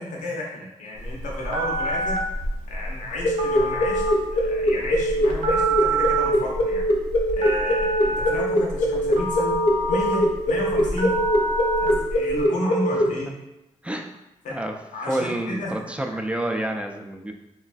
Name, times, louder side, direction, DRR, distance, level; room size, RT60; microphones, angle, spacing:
voice 1, 0.0-2.2 2.7-4.0 4.3-6.9 7.3-9.5 9.9-11.2 11.8-13.3 14.4-14.5 14.9-16.2, left 1 dB, 90° left, -2 dB, 0.6 m, -32 dB
Telephone, 1.0-12.4, right 2 dB, 70° right, 0.5 m, -27 dB
sound 1, 3.2-13.1, equal, 50° left, 0.6 m, -22 dB
voice 2, 15.1-17.3, right 1 dB, 10° right, 3 dB, 0.4 m, -28 dB
3.1 x 2.2 x 2.5 m, 0.93 s
cardioid pair, 50°, 13 cm